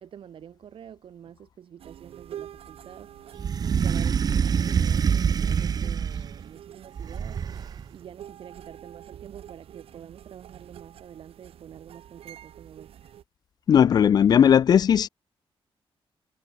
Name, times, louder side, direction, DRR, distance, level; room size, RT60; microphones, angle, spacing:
voice 1, 0.0-3.3 3.6-7.4 7.9-12.9, right 9 dB, 65° right, 2.8 m, -47 dB
sound 1, 1.8-13.2, right 10 dB, 80° right, 1.9 m, -47 dB
sound 2, 3.4-6.4 7.0-7.9, right 7 dB, 40° right, 0.9 m, -25 dB
voice 2, 13.7-15.1, left 8 dB, 45° left, 0.3 m, -17 dB
wide cardioid pair, 170°, 10 cm